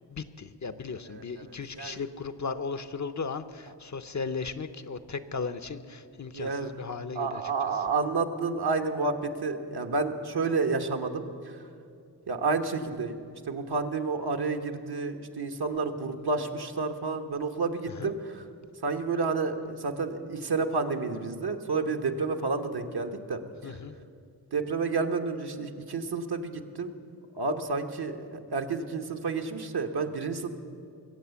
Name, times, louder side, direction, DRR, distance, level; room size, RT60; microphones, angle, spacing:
voice 1, 0.1-7.4 17.9-18.1 23.6-23.9, left 5 dB, 40° left, 11 dB, 0.7 m, -36 dB
voice 2, 1.1-2.0 6.3-6.7 7.1-11.6 12.3-13.2 13.5-18.4 18.8-23.8 24.5-26.9 27.3-30.5, right 4 dB, 60° right, 4 dB, 1.2 m, -30 dB
22.0 x 8.0 x 7.0 m, 2.4 s
cardioid pair, 50°, 43 cm